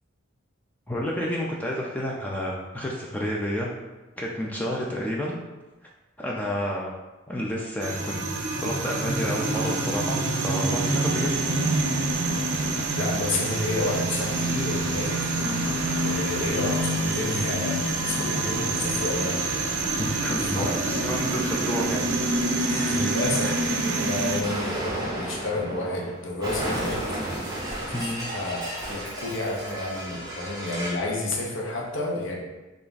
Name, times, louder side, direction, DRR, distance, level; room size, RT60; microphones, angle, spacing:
voice 1, 0.9-3.7 4.2-5.4 6.2-6.9 7.3-8.3 8.6-11.3 15.4-15.7 20.0-22.1 23.4-23.5 27.9-28.3, equal, 10° left, -3 dB, 0.3 m, -30 dB
sound 1, 7.8-24.4, right 2 dB, 55° right, 0.4 m, -26 dB
voice 2, 13.0-15.1 16.0-17.8 18.0-19.5 20.4-21.1 22.6-27.0 28.3-32.4, left 2 dB, 65° left, -1 dB, 0.7 m, -30 dB
Explosion, 24.4-31.1, right 1 dB, 20° right, 0.8 m, -33 dB
3.3 x 2.5 x 3.9 m, 1.1 s
head